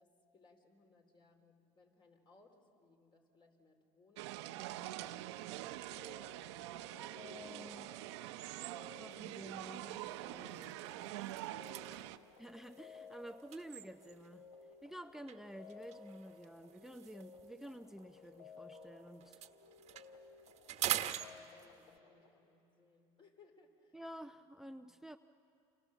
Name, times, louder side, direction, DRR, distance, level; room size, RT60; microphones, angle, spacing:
voice 1, 0.0-7.2 20.9-24.0, left 3 dB, 35° left, 4 dB, 4.2 m, -67 dB
sound 1, 4.2-12.2, right 15 dB, 85° right, 0.8 m, -45 dB
sound 2, 5.9-22.3, left 5 dB, 80° left, 5.3 m, -58 dB
voice 2, 7.2-7.9 9.0-11.2 11.9-14.4 14.8-19.4 23.9-25.2, right 1 dB, 5° right, 10 dB, 0.6 m, -51 dB
sound 3, 9.3-9.5 10.0-10.1 10.5-14.4 15.3-18.8 19.1-22.0, right 12 dB, 50° right, 1.2 m, -44 dB
30.0 x 27.5 x 7.3 m, 2.6 s
supercardioid pair, 105°, 14 cm